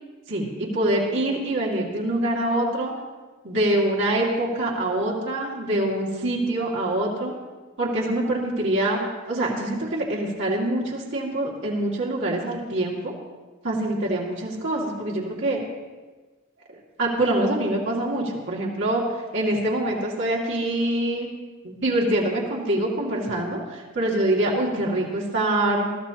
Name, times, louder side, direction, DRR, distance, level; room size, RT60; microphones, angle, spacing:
voice 1, 0.3-2.9 3.4-7.3 7.8-9.0 9.3-13.1 13.6-15.6 17.0-19.1 19.3-21.3 21.6-26.0, right 1 dB, 60° right, -4 dB, 2.3 m, -25 dB
21.0 x 13.5 x 2.9 m, 1.3 s
head